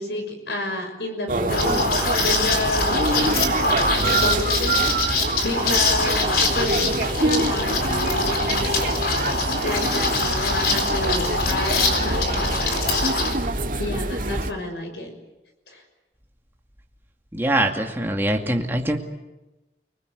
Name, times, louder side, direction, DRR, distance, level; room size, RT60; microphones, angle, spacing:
voice 1, 0.0-1.8 2.2-3.4 4.0-13.3 13.8-15.1 15.7-15.8, left 1 dB, 80° left, 5 dB, 6.1 m, -30 dB
sound 1, 1.3-14.5, right 2 dB, 50° right, 1.9 m, -25 dB
Liquid, 1.5-13.3, left 3 dB, 60° left, 4.2 m, -24 dB
voice 2, 17.3-19.0, right 1 dB, 15° right, 2 dB, 2.3 m, -23 dB
30.0 x 20.0 x 8.3 m, 1.0 s
head